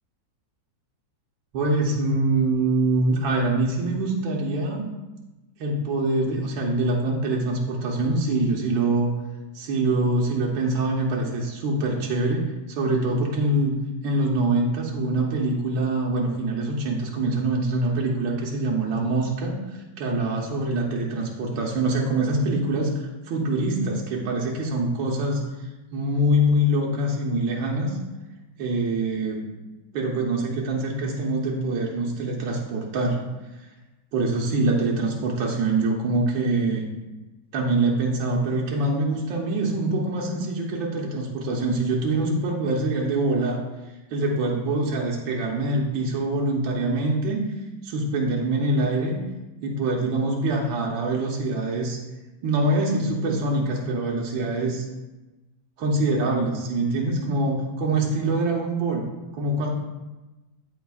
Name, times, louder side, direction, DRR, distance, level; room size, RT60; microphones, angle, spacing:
voice 1, 1.5-4.9 5.6-9.1 9.5-13.7 14.0-28.0 28.6-29.4 29.9-33.2 33.6-33.7 34.1-36.9 37.5-43.6 44.1-47.5 47.8-49.2 49.6-52.0 52.4-54.8 55.8-59.0 59.3-59.7, right 2 dB, 85° right, -1 dB, 1.6 m, -24 dB
12.5 x 4.3 x 2.3 m, 1.1 s
omnidirectional pair, 2.0 m